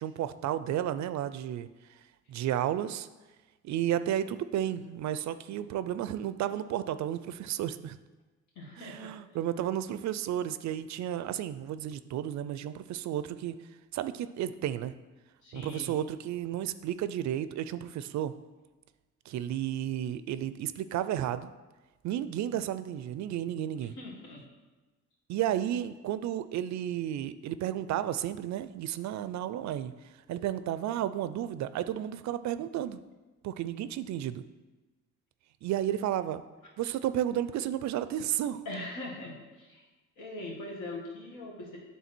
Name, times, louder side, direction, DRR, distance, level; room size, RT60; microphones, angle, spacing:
voice 1, 0.0-2.0 2.3-3.1 3.6-8.0 8.8-13.6 13.9-14.9 15.5-18.3 19.3-21.5 22.0-24.0 25.3-33.0 33.4-34.4 35.6-36.4 36.8-38.6, right 11 dB, 65° right, 13 dB, 0.4 m, -32 dB
voice 2, 8.6-9.1 15.4-15.9 23.8-24.4 38.7-39.9 40.2-41.8, left 1 dB, 80° left, -2 dB, 2.0 m, -41 dB
8.4 x 3.6 x 4.4 m, 1.2 s
cardioid pair, 90°, 30 cm